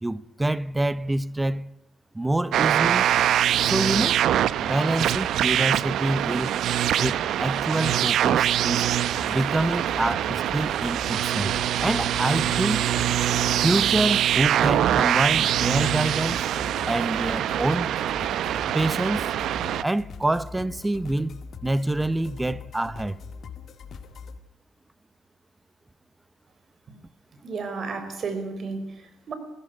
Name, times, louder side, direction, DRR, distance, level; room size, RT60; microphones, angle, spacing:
voice 1, 0.0-1.7 2.1-3.1 3.6-4.3 4.6-6.5 7.0-8.9 9.3-11.5 11.8-12.9 13.6-16.4 16.9-18.0 18.7-19.3 19.8-23.2, right 1 dB, 15° right, 0.9 m, -26 dB
sound 1, 2.5-19.8, right 11 dB, 75° right, 0.7 m, -24 dB
sound 2, 9.1-24.4, left 5 dB, 60° left, 1.9 m, -42 dB
voice 2, 27.4-29.3, right 4 dB, 50° right, 4.6 m, -33 dB
19.5 x 16.5 x 9.6 m
cardioid pair, 90°, 0 cm